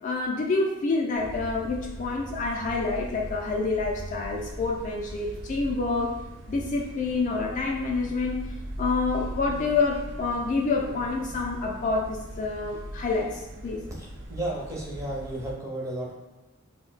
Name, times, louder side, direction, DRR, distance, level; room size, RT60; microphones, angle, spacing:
voice 1, 0.0-6.1 6.5-8.4 8.8-13.8, left 3 dB, 35° left, -1 dB, 0.3 m, -27 dB
sound 1, 1.1-15.5, right 1 dB, 60° right, 0.4 m, -39 dB
voice 2, 14.0-16.1, right 1 dB, 15° right, -3 dB, 0.6 m, -33 dB
2.5 x 2.1 x 3.8 m, 1.1 s
head